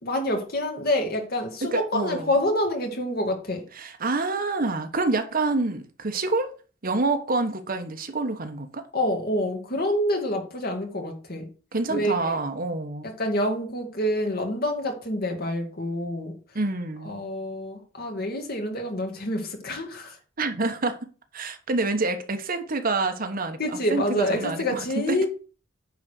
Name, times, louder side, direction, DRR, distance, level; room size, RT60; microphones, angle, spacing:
voice 1, 0.0-3.6 8.9-11.5 11.9-12.4 13.2-16.4 17.0-20.2 23.6-25.3, left 1 dB, 50° left, 2.2 m, -27 dB
voice 2, 1.6-2.3 3.7-6.5 6.8-8.9 11.7-13.1 16.5-17.2 20.4-21.0 21.3-25.3, right 3 dB, 50° right, 1.1 m, -27 dB
9.5 x 4.1 x 6.4 m
head